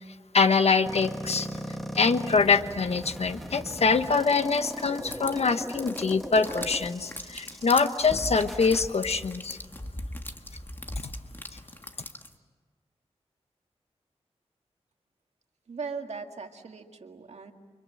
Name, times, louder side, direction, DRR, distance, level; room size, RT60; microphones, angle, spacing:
voice 1, 0.3-1.5 1.9-9.6, left 4 dB, 70° left, 10 dB, 1.2 m, -24 dB
sound 1, 0.9-8.9, equal, ahead, 1.7 m, -38 dB
sound 2, 4.9-12.4, left 1 dB, 20° left, 1.6 m, -40 dB
voice 2, 15.7-17.5, right 5 dB, 80° right, 4 dB, 2.0 m, -38 dB
30.0 x 25.0 x 7.8 m, 1.5 s
wide cardioid pair, 100°, 11 cm